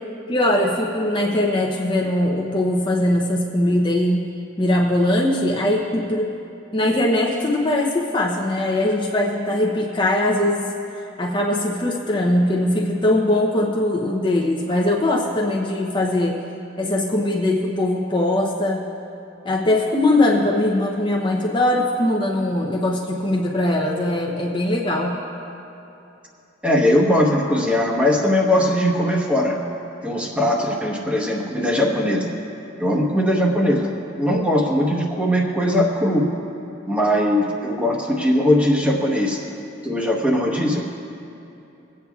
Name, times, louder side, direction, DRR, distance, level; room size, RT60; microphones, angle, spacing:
voice 1, 0.3-4.2 4.6-6.3 6.7-10.7 11.2-16.4 16.8-18.8 19.4-25.2, left 1 dB, 25° left, -2 dB, 0.6 m, -21 dB
voice 2, 26.6-29.6 30.0-32.3 32.8-36.3 36.9-39.4 39.8-40.8, left 1 dB, 5° right, -1 dB, 1.0 m, -20 dB
23.5 x 8.7 x 2.4 m, 2.9 s
head